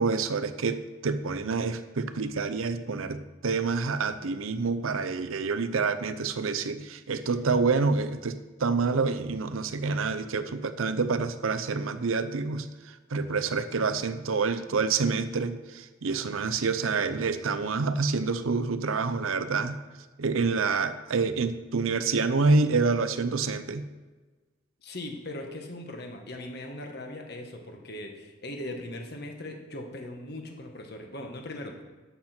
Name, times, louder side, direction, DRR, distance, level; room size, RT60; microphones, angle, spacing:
voice 1, 0.0-19.8 20.2-23.9, right 4 dB, 75° right, 11 dB, 0.6 m, -27 dB
voice 2, 24.8-31.8, left 1 dB, 50° left, 3 dB, 1.5 m, -39 dB
11.5 x 8.0 x 4.4 m, 1.3 s
head